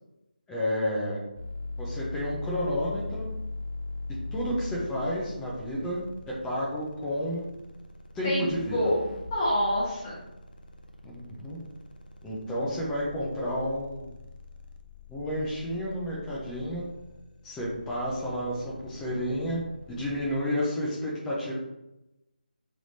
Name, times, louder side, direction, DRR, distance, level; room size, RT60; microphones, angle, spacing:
voice 1, 0.5-1.2 1.8-3.3 4.3-6.0 6.4-7.4 8.1-8.8 11.0-11.6 12.2-14.1 15.1-16.9 17.4-19.6 19.9-21.5, equal, 5° left, -5 dB, 0.7 m, -31 dB
sound 1, 1.3-20.4, left 2 dB, 80° left, 0.7 m, -42 dB
voice 2, 8.2-9.0 9.3-10.2, left 1 dB, 25° left, -8 dB, 1.2 m, -27 dB
4.7 x 3.4 x 2.7 m, 0.93 s
figure-of-eight pair, 165°, 5 cm